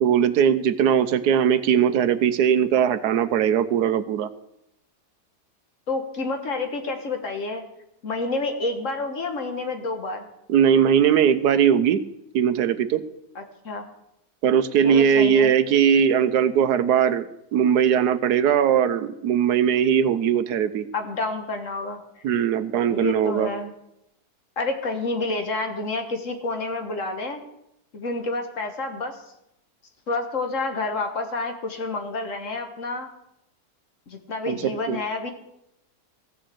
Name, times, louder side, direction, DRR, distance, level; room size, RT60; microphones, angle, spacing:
voice 1, 0.0-4.3 10.5-12.0 12.3-13.0 14.4-17.3 17.5-20.9 22.2-23.5 34.5-35.0, right 8 dB, 80° right, 13 dB, 1.3 m, -20 dB
voice 2, 5.9-7.6 8.0-10.3 13.4-13.9 14.8-15.5 20.9-22.0 22.9-23.7 24.6-27.4 27.9-29.2 30.1-33.1 34.1-35.3, left 3 dB, 50° left, 5 dB, 1.7 m, -29 dB
15.0 x 6.5 x 7.6 m, 0.82 s
omnidirectional pair, 1.7 m